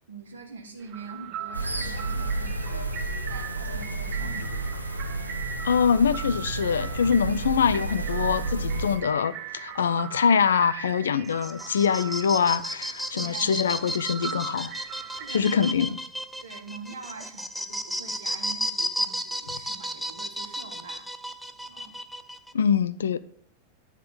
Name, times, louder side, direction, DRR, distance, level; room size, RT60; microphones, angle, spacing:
voice 1, 0.0-4.8 13.1-13.6 15.1-15.8 16.4-21.1 21.7-22.0, right 4 dB, 70° right, 1.3 m, -44 dB
sound 1, 0.8-15.7, right 8 dB, 40° right, 0.6 m, -40 dB
sound 2, 1.5-9.0, right 2 dB, 85° right, 0.8 m, -31 dB
voice 2, 5.6-14.7 15.3-16.0 22.5-23.2, left 7 dB, 65° left, 0.4 m, -24 dB
sound 3, 11.2-22.5, equal, ahead, 0.4 m, -33 dB
9.6 x 3.7 x 5.5 m
figure-of-eight pair, 90°, 0 cm